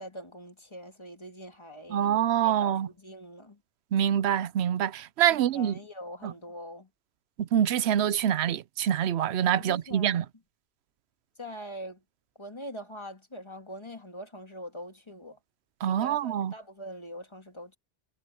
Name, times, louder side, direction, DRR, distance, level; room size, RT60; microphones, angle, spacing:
voice 1, 0.0-3.6 5.3-6.9 9.6-10.2 11.4-12.0 12.4-15.4 15.9-17.8, equal, 25° left, 1.9 m, -43 dB
voice 2, 1.9-2.9 3.9-5.7 6.2-6.3 7.4-10.2 15.8-16.5, right 10 dB, 80° right, 0.9 m, -25 dB
omnidirectional pair, 1.1 m